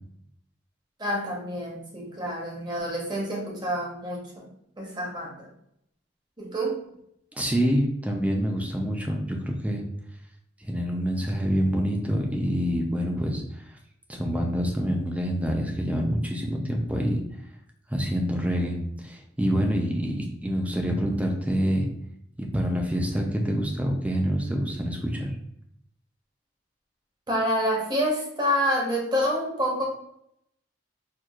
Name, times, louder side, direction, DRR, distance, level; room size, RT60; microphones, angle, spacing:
voice 1, 1.0-4.5 4.8-5.5 6.4-6.8 27.3-29.9, equal, 25° right, -3 dB, 1.0 m, -27 dB
voice 2, 7.3-9.8 10.6-13.6 14.1-17.2 17.9-21.9 22.4-25.3, equal, 10° right, 1 dB, 0.5 m, -26 dB
4.4 x 2.4 x 2.4 m, 0.74 s
head